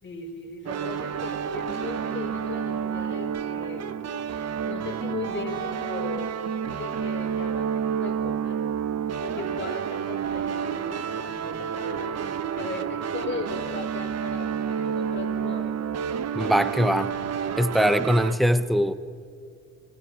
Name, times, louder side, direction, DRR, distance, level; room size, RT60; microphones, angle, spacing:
voice 1, 0.0-8.6 9.2-15.8, left 3 dB, 40° left, 1 dB, 4.3 m, -38 dB
sound 1, 0.7-18.4, right 7 dB, 55° right, 1.1 m, -30 dB
voice 2, 16.3-17.1 17.6-18.9, equal, ahead, 12 dB, 1.0 m, -22 dB
25.0 x 18.0 x 5.9 m, 2.4 s
cardioid pair, 90°, 30 cm